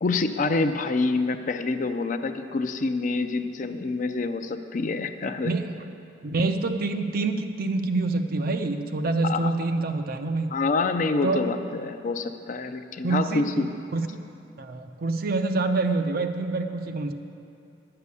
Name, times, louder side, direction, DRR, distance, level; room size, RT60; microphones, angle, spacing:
voice 1, 0.0-5.5 9.2-9.5 10.5-13.7, left 3 dB, 45° left, 8 dB, 0.5 m, -27 dB
voice 2, 5.4-5.8 6.2-10.5 11.2-11.4 13.0-13.7 13.9-14.2 14.6-17.1, right 3 dB, 55° right, 7 dB, 0.6 m, -26 dB
10.5 x 6.8 x 8.3 m, 2.7 s
head